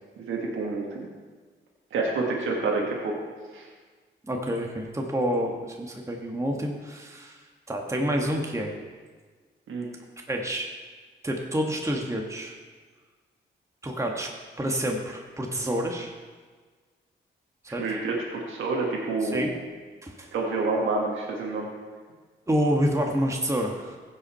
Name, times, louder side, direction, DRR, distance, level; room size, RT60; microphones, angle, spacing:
voice 1, 0.2-1.1 1.9-3.2 3.5-3.7 9.7-9.9 17.8-19.5 20.3-21.7, right 3 dB, 80° right, -2 dB, 1.6 m, -28 dB
voice 2, 4.3-7.4 7.7-8.7 10.3-10.7 11.2-12.5 13.8-14.3 14.6-16.1 17.6-17.8 19.2-19.5 20.0-20.3 22.5-24.0, equal, 15° right, 1 dB, 1.4 m, -28 dB
15.0 x 5.6 x 4.3 m, 1.5 s
cardioid pair, 60°, 20 cm